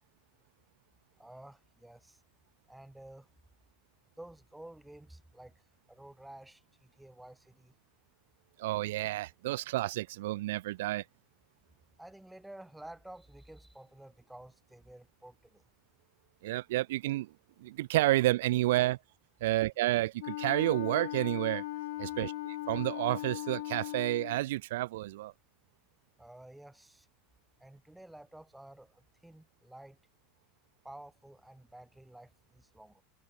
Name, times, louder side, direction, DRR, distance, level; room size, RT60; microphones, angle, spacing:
voice 1, 1.2-2.2 2.7-3.3 4.2-7.8 12.0-15.6 26.2-27.1 27.6-30.0 30.8-33.0, right 1 dB, 5° right, 2.3 m, -52 dB
voice 2, 8.6-11.0 16.4-17.3 17.6-19.0 19.4-21.6 22.0-25.3, right 17 dB, 85° right, 0.4 m, -30 dB
Wind instrument woodwind instrument, 20.2-24.4, left 18 dB, 80° left, 0.4 m, -38 dB
supercardioid pair, 150°, 0 cm